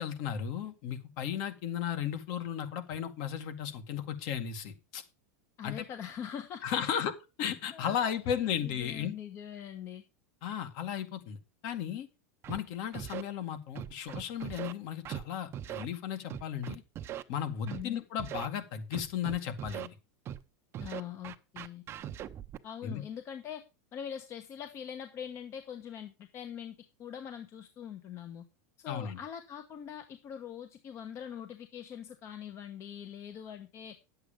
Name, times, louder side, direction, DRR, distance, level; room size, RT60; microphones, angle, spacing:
voice 1, 0.0-5.0 5.6-5.9 6.6-7.1 7.4-9.1 10.4-11.4 11.6-12.1 12.5-16.8 17.3-19.9 22.8-23.0 28.9-29.2, left 9 dB, 50° left, 9 dB, 2.1 m, -35 dB
voice 2, 5.6-7.0 7.7-8.1 8.6-10.0 17.7-18.0 20.8-21.8 22.6-23.6 23.9-28.4 28.8-34.0, left 9 dB, 35° left, 8 dB, 1.1 m, -43 dB
Scratching (performance technique), 12.4-12.6 12.9-13.2 13.8-14.7 15.1-15.2 15.5-15.9 16.3-17.2 17.7-17.8 18.2-18.5 18.9-19.9 20.3-20.4 20.7-22.6, right 11 dB, 30° right, 0.8 m, -40 dB
10.5 x 8.0 x 5.1 m, 0.28 s
supercardioid pair, 145°, 8 cm